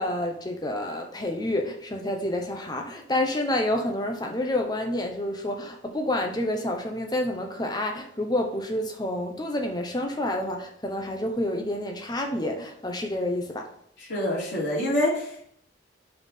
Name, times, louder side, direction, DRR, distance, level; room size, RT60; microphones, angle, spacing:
voice 1, 0.0-13.7, left 1 dB, 20° left, 0.9 m, -29 dB
voice 2, 14.1-15.5, left 1 dB, 75° left, 3.0 m, -26 dB
5.4 x 4.6 x 5.6 m
head